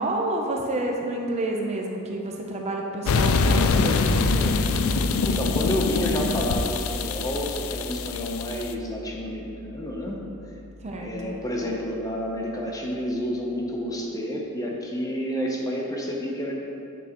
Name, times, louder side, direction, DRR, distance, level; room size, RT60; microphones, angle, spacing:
voice 1, 0.0-4.6 10.8-11.4, right 1 dB, 30° right, 0 dB, 0.6 m, -29 dB
sound 1, 3.1-8.7, left 4 dB, 70° left, 0.4 m, -24 dB
sound 2, 3.8-13.6, left 1 dB, 55° left, 0.9 m, -35 dB
voice 2, 5.2-10.2 11.0-16.5, equal, 15° left, -1 dB, 0.7 m, -29 dB
8.2 x 6.8 x 3.0 m, 2.7 s
head